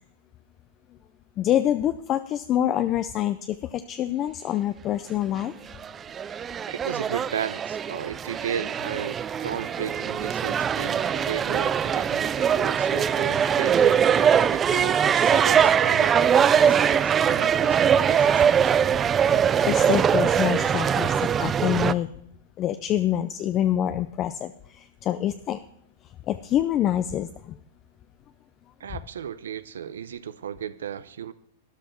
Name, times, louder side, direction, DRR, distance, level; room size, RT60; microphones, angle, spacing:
voice 1, 1.4-5.5 19.6-22.1 22.6-25.6 26.3-27.6, left 11 dB, 35° left, 11 dB, 0.5 m, -26 dB
sound 1, 5.8-21.9, right 8 dB, 25° right, 0.4 m, -22 dB
voice 2, 6.7-18.7 28.8-31.3, right 8 dB, 85° right, 15 dB, 0.7 m, -34 dB
12.5 x 10.0 x 4.5 m, 0.70 s
hypercardioid pair, 125°, 0 cm